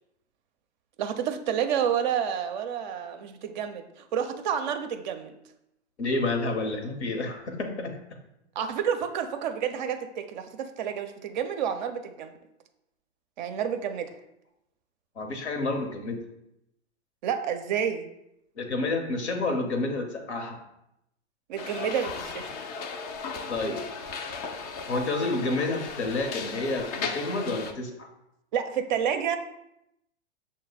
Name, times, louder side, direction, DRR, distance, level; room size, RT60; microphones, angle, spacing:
voice 1, 1.0-5.3 8.6-12.3 13.4-14.2 17.2-18.1 21.5-22.5 28.5-29.4, right 8 dB, 45° right, 8 dB, 0.4 m, -29 dB
voice 2, 6.0-8.0 15.2-16.2 18.6-20.6 23.5-23.8 24.9-28.1, left 2 dB, 70° left, 5 dB, 0.9 m, -29 dB
sound 1, 21.6-27.7, left 5 dB, 35° left, 0.4 m, -36 dB
6.3 x 2.1 x 3.9 m, 0.83 s
figure-of-eight pair, 105°, 35 cm